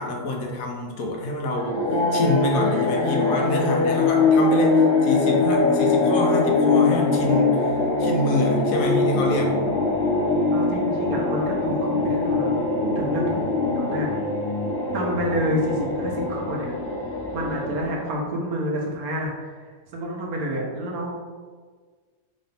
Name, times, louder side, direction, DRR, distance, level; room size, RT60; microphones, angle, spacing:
voice 1, 0.0-9.6, left 2 dB, 75° left, 0 dB, 1.1 m, -26 dB
sound 1, 1.6-18.2, left 3 dB, 50° left, 0.7 m, -22 dB
voice 2, 10.5-12.5 12.8-13.4 13.8-14.1 14.9-16.7 17.3-19.7 19.9-21.2, equal, 85° right, -1 dB, 1.2 m, -28 dB
3.8 x 2.6 x 3.2 m, 1.5 s
omnidirectional pair, 1.5 m